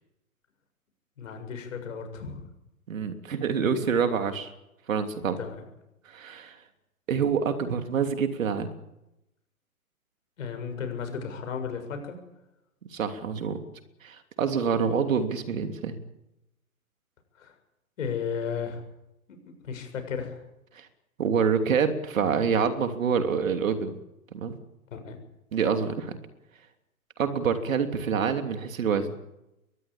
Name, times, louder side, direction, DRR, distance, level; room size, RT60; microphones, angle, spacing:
voice 1, 1.2-2.5 5.4-5.7 10.4-12.2 17.4-17.5 18.0-18.8 19.3-19.4 19.6-20.4 24.9-25.2, left 6 dB, 60° left, 6 dB, 7.3 m, -34 dB
voice 2, 2.9-4.5 4.9-5.4 6.1-6.6 7.1-8.7 12.9-13.6 14.0-16.0 20.7-20.9 21.2-24.0 24.3-24.6 25.5-26.2 27.2-29.2, right 6 dB, 65° right, 7 dB, 3.2 m, -26 dB
23.0 x 19.5 x 8.7 m, 0.90 s
figure-of-eight pair, 125°, 43 cm